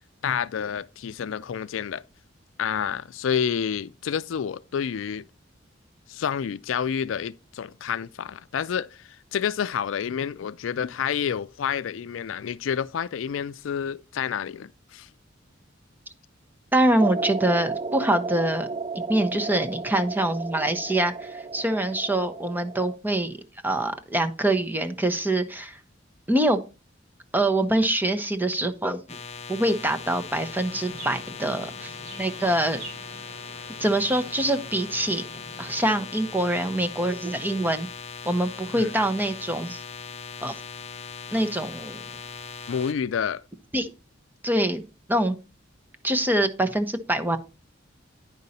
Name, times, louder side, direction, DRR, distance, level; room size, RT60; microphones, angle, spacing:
voice 1, 0.2-2.0 2.6-5.2 6.1-15.1 38.7-38.9 42.7-43.4, left 7 dB, 80° left, 0.4 m, -29 dB
voice 2, 16.7-18.7 18.9-23.3 23.6-25.8 26.3-26.6 27.3-29.0 29.5-32.8 33.8-35.2 35.6-37.9 38.3-39.8 40.4-40.6 41.3-42.0 43.7-43.9 44.4-44.8 45.1-45.4 46.0-47.4, right 1 dB, 10° right, 0.7 m, -24 dB
sound 1, 17.0-22.9, right 4 dB, 25° right, 0.4 m, -33 dB
sound 2, 29.1-42.9, left 6 dB, 35° left, 0.6 m, -40 dB
Chirp tweet, 30.7-35.8, right 2 dB, 85° right, 4.3 m, -45 dB
9.7 x 5.4 x 4.1 m
head